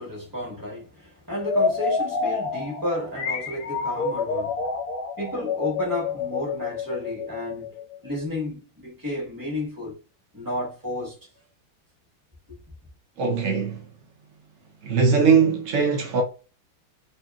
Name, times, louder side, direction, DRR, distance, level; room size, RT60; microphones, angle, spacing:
voice 1, 0.0-4.5 5.2-7.8 8.0-10.0 10.3-11.2 12.5-12.6, left 1 dB, 10° right, 1.2 m, -32 dB
sound 1, 1.4-8.1, left 5 dB, 70° left, 1.0 m, -28 dB
voice 2, 13.2-13.9 14.8-16.2, right 5 dB, 75° right, 0.7 m, -20 dB
2.9 x 2.8 x 2.3 m
omnidirectional pair, 2.1 m